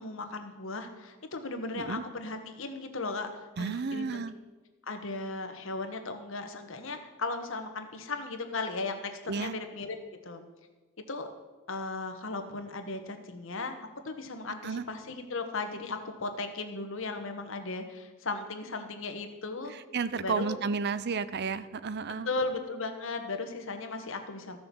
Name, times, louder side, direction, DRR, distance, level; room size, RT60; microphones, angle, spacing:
voice 1, 0.0-3.3 3.6-4.2 4.9-9.1 9.4-10.0 10.2-10.4 11.0-11.3 11.7-13.7 14.0-19.7 20.1-20.6 22.2-24.6, left 3 dB, 65° left, 6 dB, 1.3 m, -36 dB
voice 2, 3.6-4.3 9.3-9.6 14.6-14.9 19.7-22.3, right 5 dB, 50° right, 15 dB, 0.5 m, -32 dB
13.5 x 6.8 x 7.0 m, 1.3 s
head